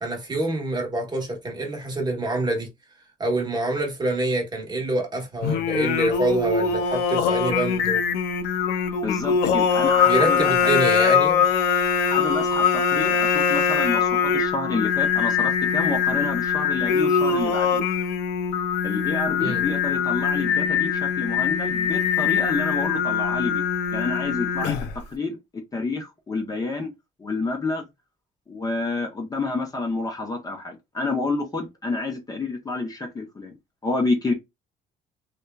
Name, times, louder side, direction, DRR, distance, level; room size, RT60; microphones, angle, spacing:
voice 1, 0.0-2.7 3.2-8.0 10.0-11.5 19.4-19.6, right 2 dB, 25° right, 1.0 m, -26 dB
Singing, 5.4-25.0, left 7 dB, 85° left, 0.4 m, -22 dB
voice 2, 9.0-10.7 12.0-17.8 18.8-23.6 23.9-24.8 25.1-26.9 27.2-27.8 28.5-33.5 33.8-34.3, left 3 dB, 20° left, 0.6 m, -29 dB
2.8 x 2.2 x 2.2 m
cardioid pair, 110°, 17 cm